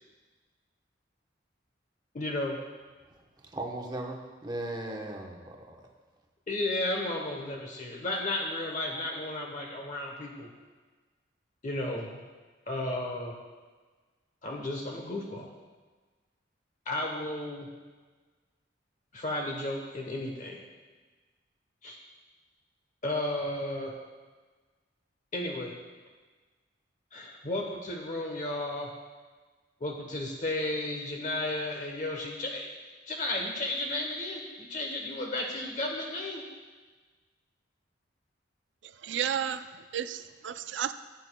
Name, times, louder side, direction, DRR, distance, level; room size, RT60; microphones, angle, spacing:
voice 1, 2.1-2.6 6.5-10.5 11.6-12.2 12.7-13.4 14.4-15.5 16.8-17.7 19.1-20.6 21.8-22.0 23.0-23.9 25.3-25.7 27.1-28.9 29.8-32.7 33.1-36.4, left 1 dB, 40° left, 0 dB, 1.0 m, -33 dB
voice 2, 3.4-5.8, right 1 dB, 25° right, 1 dB, 1.0 m, -37 dB
voice 3, 38.8-40.9, right 9 dB, 75° right, 12 dB, 0.4 m, -33 dB
15.0 x 8.9 x 2.3 m, 1.4 s
head